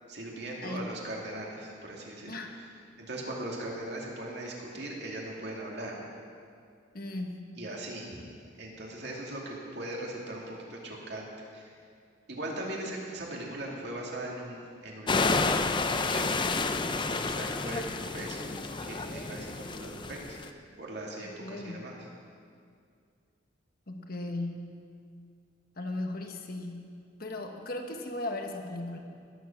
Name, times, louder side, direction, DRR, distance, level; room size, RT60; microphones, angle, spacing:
voice 1, 0.1-2.4 3.0-6.0 7.6-8.1 8.6-11.7 12.3-16.6 17.1-18.5 18.8-20.4 20.8-22.0, right 1 dB, 60° right, -2 dB, 2.7 m, -39 dB
voice 2, 0.6-0.9 2.2-2.5 6.9-7.5 21.4-21.8 23.9-24.7 25.8-29.0, left 2 dB, 50° left, 3 dB, 1.3 m, -37 dB
sound 1, 15.1-20.5, left 3 dB, 25° left, 0.5 m, -30 dB
19.5 x 7.5 x 7.3 m, 2.3 s
head